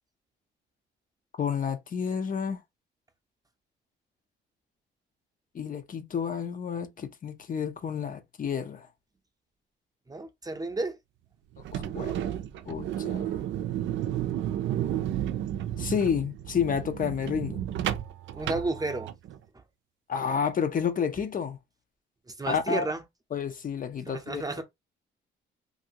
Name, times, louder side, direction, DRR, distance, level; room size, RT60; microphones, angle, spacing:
voice 1, 1.4-2.6 5.5-8.9 11.7-12.1 12.7-13.4 15.8-17.6 20.1-21.6 22.5-22.9 23.3-24.6, left 7 dB, 45° left, 0.6 m, -30 dB
voice 2, 10.1-11.0 18.3-19.1 22.4-23.0 24.1-24.6, right 2 dB, 20° right, 0.7 m, -31 dB
sound 1, 11.5-19.4, right 11 dB, 75° right, 0.4 m, -32 dB
2.8 x 2.6 x 2.8 m
cardioid pair, 90°, 20 cm